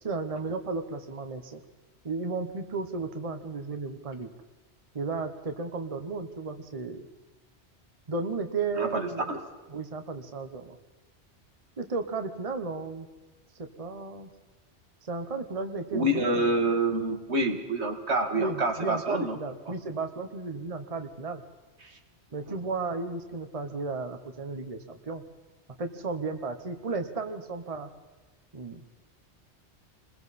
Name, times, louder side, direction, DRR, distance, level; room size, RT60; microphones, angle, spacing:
voice 1, 0.0-1.6 2.0-4.3 4.9-7.1 8.1-9.3 9.7-10.8 11.8-13.1 13.5-14.3 15.0-16.5 18.3-21.4 22.3-25.2 25.8-27.9 28.5-28.8, right 4 dB, 35° right, 6 dB, 1.1 m, -34 dB
voice 2, 8.8-9.4 15.9-19.4 21.8-22.0 22.5-22.6, right 2 dB, 80° right, 4 dB, 2.2 m, -27 dB
29.0 x 21.0 x 4.3 m, 1.2 s
omnidirectional pair, 1.1 m